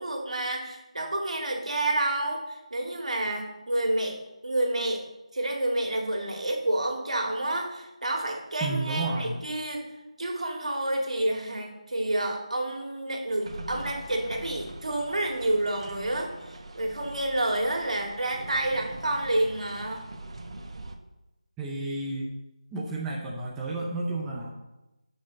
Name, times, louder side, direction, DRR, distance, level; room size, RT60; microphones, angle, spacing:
voice 1, 0.0-5.0 5.3-9.9 10.2-16.3 16.7-20.1, right 1 dB, 70° right, 1 dB, 2.3 m, -29 dB
voice 2, 8.6-9.4 21.6-22.3 22.7-24.5, right 2 dB, 5° right, -4 dB, 0.7 m, -31 dB
sound 1, 13.4-21.0, right 2 dB, 55° right, 1.1 m, -43 dB
11.5 x 5.8 x 4.0 m, 0.97 s
figure-of-eight pair, 165°, 4 cm